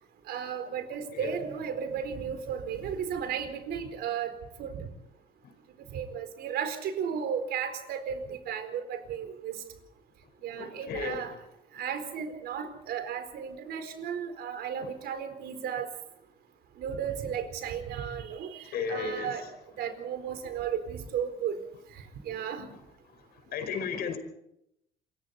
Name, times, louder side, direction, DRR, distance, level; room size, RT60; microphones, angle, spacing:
voice 1, 0.3-4.3 4.6-4.9 5.9-9.6 10.4-11.3 11.7-15.9 16.8-21.6 22.2-22.7, right 8 dB, 70° right, 4.4 m, -34 dB
voice 2, 10.6-11.3 14.8-14.9 18.7-19.5 22.6-22.8 23.5-24.2, left 5 dB, 65° left, 5.1 m, -34 dB
27.5 x 24.5 x 4.2 m
cardioid pair, 110°, 17 cm